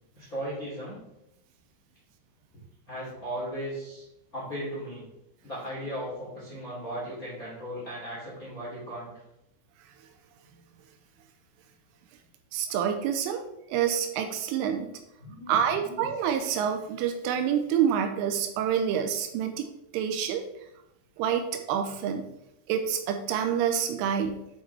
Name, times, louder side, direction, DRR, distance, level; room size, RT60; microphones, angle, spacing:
voice 1, 0.1-1.0 2.9-4.0 4.3-5.1 5.4-9.1 15.2-16.0, equal, 30° left, -7 dB, 1.5 m, -37 dB
voice 2, 12.5-13.4 13.7-14.9 15.5-19.7 19.9-20.4 21.2-22.3 22.7-24.5, right 8 dB, 85° right, 6 dB, 3.1 m, -27 dB
8.1 x 5.7 x 3.3 m, 0.85 s
omnidirectional pair, 5.8 m